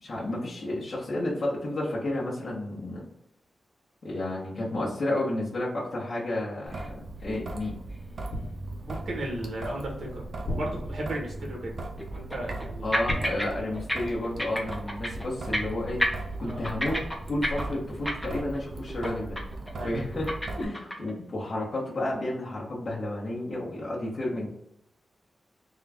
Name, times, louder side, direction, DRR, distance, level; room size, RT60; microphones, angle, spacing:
voice 1, 0.0-3.1 4.0-7.7 12.8-16.0 16.4-17.0 17.3-19.4 19.8-24.5, left 1 dB, 50° left, -6 dB, 1.0 m, -31 dB
sound 1, 6.7-6.9 7.2-7.3 7.9-8.0 11.2-11.3 12.0-12.7 12.9-13.5 13.7-14.0 14.2-15.2 15.5-15.7 16.0-18.6 18.9-19.1 19.4-19.7 19.9-21.1, equal, 5° left, 0.6 m, -30 dB
Traffic noise roadway noise / Drip / Trickle dribble, 6.7-20.7, right 2 dB, 55° right, 0.5 m, -38 dB
sound 2, 8.3-9.1 10.4-11.4 13.1-14.2 14.4-14.7, left 1 dB, 90° left, 1.0 m, -36 dB
voice 2, 8.8-11.7 12.1-12.8 16.4-16.6 19.7-20.0, right 1 dB, 70° right, -1 dB, 1.3 m, -35 dB
3.7 x 2.4 x 3.4 m, 0.76 s
wide cardioid pair, 170°, 0 cm